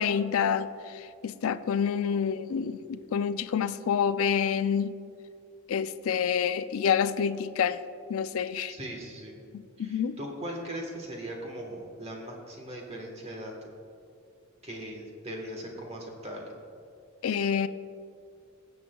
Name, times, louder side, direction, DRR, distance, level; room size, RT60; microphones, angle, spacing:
voice 1, 0.0-4.9 5.7-7.8 8.1-8.7 9.5-10.2 17.2-17.7, left 7 dB, 65° left, 13 dB, 0.4 m, -28 dB
voice 2, 8.7-9.4 9.8-13.5 14.6-16.5, right 1 dB, 30° right, 0 dB, 1.3 m, -39 dB
21.0 x 7.8 x 2.3 m, 2.4 s
head